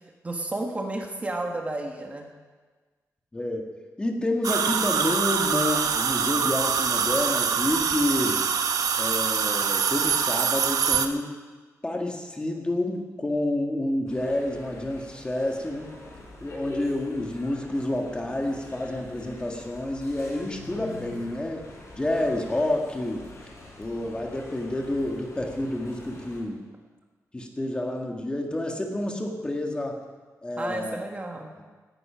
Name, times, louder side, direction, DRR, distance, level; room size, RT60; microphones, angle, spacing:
voice 1, 0.2-2.3 30.6-31.5, right 2 dB, 25° right, 2 dB, 1.4 m, -32 dB
voice 2, 3.3-3.7 4.0-8.4 9.0-11.3 11.8-15.9 16.4-21.6 21.9-23.3 23.8-26.6 27.3-30.0 30.4-31.0, left 1 dB, 15° left, 2 dB, 1.7 m, -29 dB
sound 1, 4.4-11.1, right 6 dB, 85° right, 0.9 m, -24 dB
sound 2, 14.1-26.4, left 2 dB, 55° left, 4.8 m, -45 dB
17.5 x 11.0 x 5.7 m, 1.4 s
wide cardioid pair, 160°, 6 cm